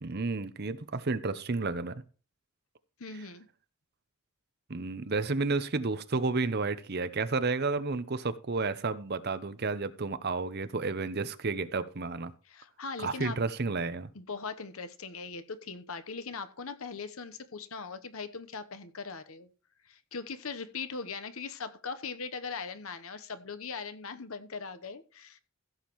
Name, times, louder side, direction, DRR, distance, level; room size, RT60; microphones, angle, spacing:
voice 1, 0.0-2.0 4.7-12.3 13.0-14.1, right 3 dB, 45° right, 0.8 m, -31 dB
voice 2, 3.0-3.5 12.4-13.4 14.1-19.5 19.8-25.4, left 5 dB, 70° left, 1.0 m, -40 dB
16.0 x 7.4 x 3.1 m
head